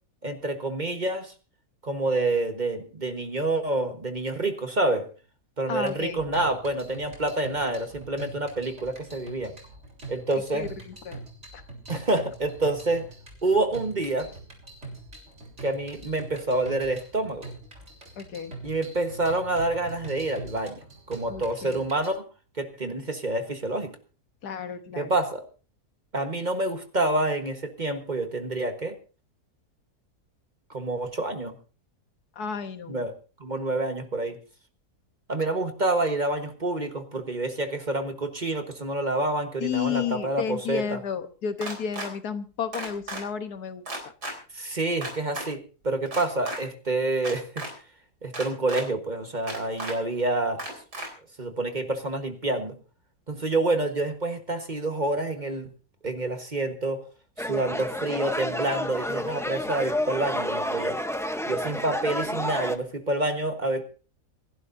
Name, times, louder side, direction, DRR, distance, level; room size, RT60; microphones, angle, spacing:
voice 1, 0.2-1.3 1.8-5.1 5.6-9.5 10.1-10.7 11.9-13.0 13.4-14.3 15.6-17.4 18.6-20.8 21.1-22.2 22.6-23.9 25.0-25.4 26.1-28.9 30.7-31.5 32.9-33.1 33.4-34.4 35.3-41.0 44.5-47.6 48.2-50.6 51.4-52.8 53.3-55.7 56.0-57.0 57.4-61.0 61.5-63.8, right 2 dB, 30° right, 6 dB, 1.4 m, -28 dB
voice 2, 5.7-6.2 10.5-11.2 11.5-11.6 18.2-18.5 21.3-21.8 24.4-25.1 32.3-33.0 39.6-44.1, left 7 dB, 80° left, 9 dB, 1.6 m, -32 dB
sound 1, 5.8-22.1, right 2 dB, 45° right, 4.0 m, -44 dB
sound 2, 41.6-42.1 42.7-43.2 43.8-44.3 45.0-45.5 46.1-46.6 47.2-47.7 48.3-48.8 49.5-49.9 50.6-51.1, right 2 dB, 90° right, 4.5 m, -34 dB
sound 3, 57.4-62.8, left 1 dB, 5° left, 0.5 m, -30 dB
27.5 x 11.5 x 2.7 m, 0.35 s
omnidirectional pair, 1.7 m